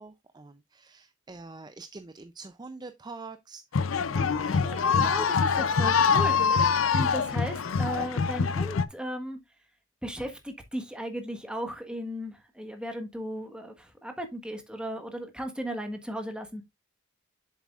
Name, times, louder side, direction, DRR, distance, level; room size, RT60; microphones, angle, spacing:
voice 1, 0.0-3.9, right 3 dB, 20° right, 0.5 m, -45 dB
sound 1, 3.7-8.8, left 5 dB, 75° left, 0.6 m, -24 dB
voice 2, 4.1-6.6 6.9-9.4 10.0-16.6, equal, 5° right, 1.4 m, -36 dB
7.3 x 7.2 x 2.4 m
head